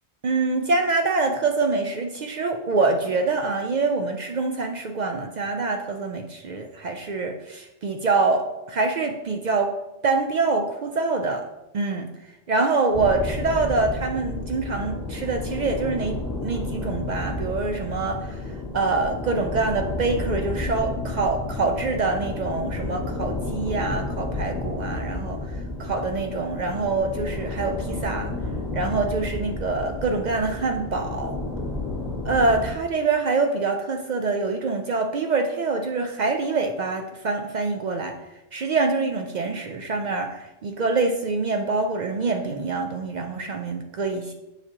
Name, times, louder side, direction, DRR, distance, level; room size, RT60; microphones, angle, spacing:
voice 1, 0.2-9.8 10.0-11.4 11.7-12.1 12.5-18.3 18.7-25.4 25.8-28.3 28.7-31.4 32.2-38.1 38.5-44.3, right 3 dB, 70° right, 4 dB, 0.4 m, -25 dB
sound 1, 12.9-32.7, left 2 dB, ahead, 1.5 m, -31 dB
7.1 x 4.9 x 2.8 m, 0.98 s
omnidirectional pair, 1.3 m